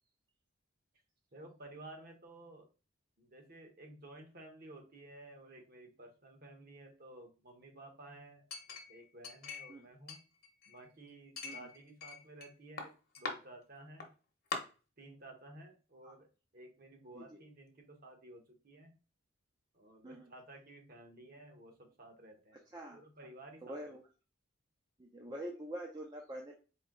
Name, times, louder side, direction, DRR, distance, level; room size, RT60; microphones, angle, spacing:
voice 1, 1.3-2.7 3.2-10.2 10.7-12.9 13.2-14.1 15.0-16.3 16.5-18.9 19.7-22.6 22.9-24.0, right 2 dB, 45° right, 3 dB, 1.0 m, -54 dB
Chink clink, 8.5-9.8 10.1-10.9 11.4-12.5 12.8-13.3 14.0-14.1 14.5-14.6, left 4 dB, 45° left, 0.9 m, -42 dB
voice 2, 23.6-24.0 25.0-26.6, right 1 dB, 20° right, 0 dB, 0.5 m, -45 dB
4.3 x 2.7 x 3.7 m, 0.33 s
head